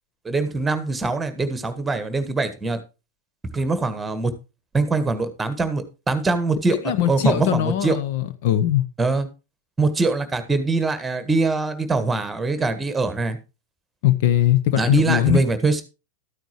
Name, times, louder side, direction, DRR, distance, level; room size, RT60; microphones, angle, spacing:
voice 1, 0.2-2.8 3.5-4.3 4.7-8.0 9.0-9.3 9.8-13.4 14.8-15.8, right 3 dB, 10° right, 1.5 m, -23 dB
voice 2, 6.8-8.8 14.0-15.4, left 12 dB, 50° left, 0.8 m, -20 dB
13.0 x 9.1 x 3.1 m
figure-of-eight pair, 90°, 0 cm